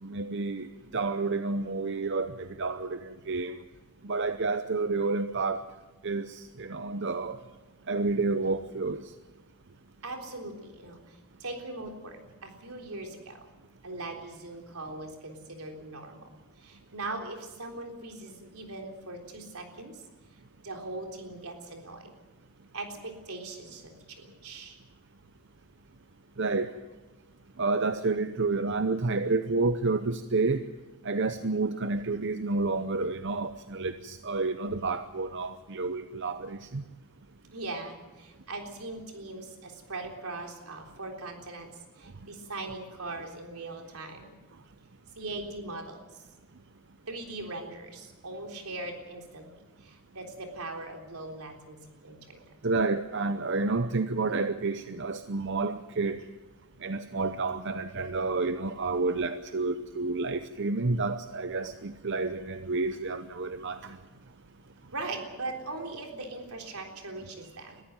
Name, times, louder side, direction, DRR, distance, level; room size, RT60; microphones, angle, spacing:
voice 1, 0.0-0.7 0.9-3.6 4.0-5.7 6.0-7.4 7.9-9.1 26.4-26.8 27.6-30.6 31.0-36.8 52.6-56.2 56.8-64.0, right 3 dB, 55° right, 0.7 m, -30 dB
voice 2, 10.0-13.5 13.8-16.3 16.6-20.0 20.6-22.1 22.7-24.8 37.5-44.4 45.2-46.2 47.1-52.5 64.9-67.8, right 2 dB, 85° right, 3.7 m, -40 dB
22.0 x 14.5 x 9.0 m
head